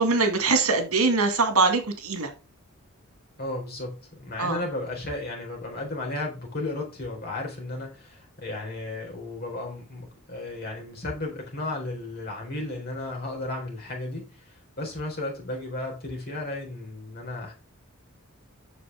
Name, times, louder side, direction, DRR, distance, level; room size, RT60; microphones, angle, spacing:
voice 1, 0.0-2.3 4.4-4.6, right 4 dB, 75° right, 2.0 m, -22 dB
voice 2, 3.4-17.5, left 2 dB, 45° left, 4.0 m, -34 dB
8.4 x 6.4 x 3.5 m
head